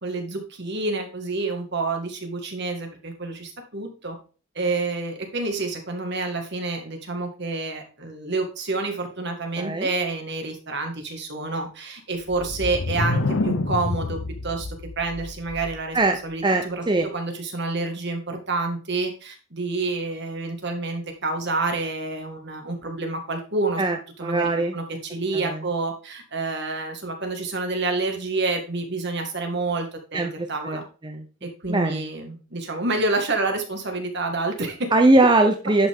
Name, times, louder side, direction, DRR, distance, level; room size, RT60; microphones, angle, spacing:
voice 1, 0.0-4.2 4.6-14.7 15.0-16.0 16.2-16.8 17.1-23.8 24.2-30.8 31.4-34.9, right 3 dB, 55° right, 4 dB, 1.9 m, -28 dB
voice 2, 9.6-9.9 15.9-17.1 23.8-24.7 25.3-25.6 30.1-31.3 31.7-32.0 34.9-35.9, right 2 dB, 20° right, 5 dB, 0.7 m, -21 dB
sound 1, 12.2-16.0, left 2 dB, 75° left, 0.8 m, -28 dB
11.0 x 5.7 x 3.7 m, 0.36 s
head